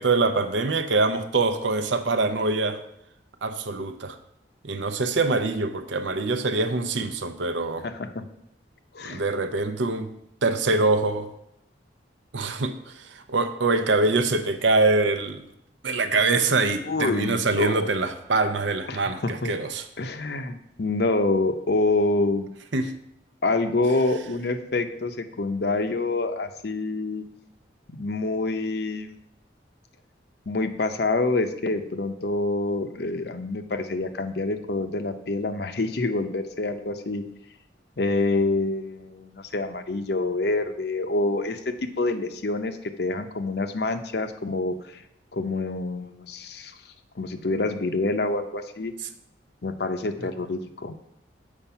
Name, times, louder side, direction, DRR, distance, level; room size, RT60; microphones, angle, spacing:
voice 1, 0.0-2.8 3.4-4.2 4.6-7.9 9.0-10.1 10.4-11.3 12.3-15.4 15.8-19.8 22.7-22.9 50.2-50.3, right 3 dB, 80° right, 9 dB, 0.7 m, -24 dB
voice 2, 7.8-8.2 8.9-9.2 16.9-17.8 18.9-19.5 20.0-22.5 23.4-27.2 27.9-29.2 30.5-37.2 38.0-45.0 45.3-46.8 47.2-48.9 49.6-50.9, left 2 dB, 60° left, 9 dB, 0.6 m, -27 dB
7.2 x 5.0 x 5.6 m, 0.77 s
head